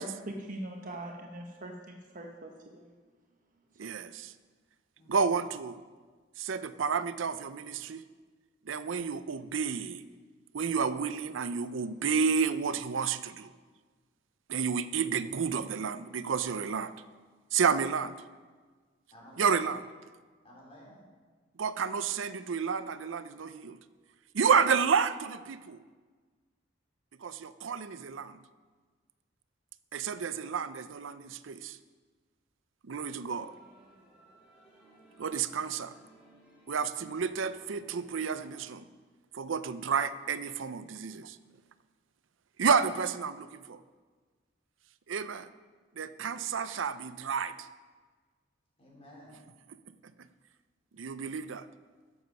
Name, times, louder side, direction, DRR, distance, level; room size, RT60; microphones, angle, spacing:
voice 1, 0.0-2.9, right 1 dB, 45° right, 2 dB, 1.0 m, -42 dB
voice 2, 3.8-4.3 5.1-5.8 6.4-8.0 8.7-10.0 10.5-13.5 14.5-16.9 17.5-18.2 19.4-19.8 21.6-23.8 24.3-25.8 27.2-28.4 29.9-31.8 32.8-33.5 35.2-35.9 36.7-38.9 39.3-41.4 42.6-43.8 45.1-45.5 46.0-47.7 50.9-51.7, right 6 dB, 75° right, 13 dB, 0.5 m, -30 dB
voice 3, 19.1-19.7 20.4-21.1 48.8-49.3, equal, 30° left, -4 dB, 3.8 m, -52 dB
sound 1, 33.3-38.6, right 1 dB, 5° right, 2.8 m, -60 dB
14.0 x 7.1 x 5.4 m, 1.4 s
head